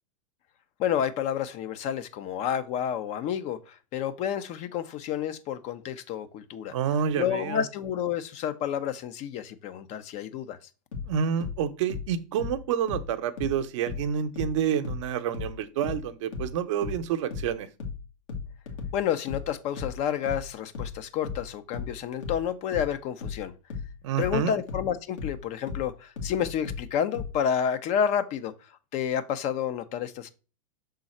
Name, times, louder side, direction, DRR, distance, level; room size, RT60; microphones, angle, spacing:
voice 1, 0.8-6.7 7.2-10.6 18.9-23.5 24.2-28.5 28.9-30.3, left 9 dB, 45° left, 0.7 m, -30 dB
voice 2, 6.7-7.6 11.1-17.7 24.0-24.6, right 8 dB, 65° right, 0.8 m, -28 dB
sound 1, 10.9-14.1 14.4-27.4, left 5 dB, 70° left, 1.8 m, -36 dB
6.2 x 3.9 x 4.2 m
hypercardioid pair, 100°, 17 cm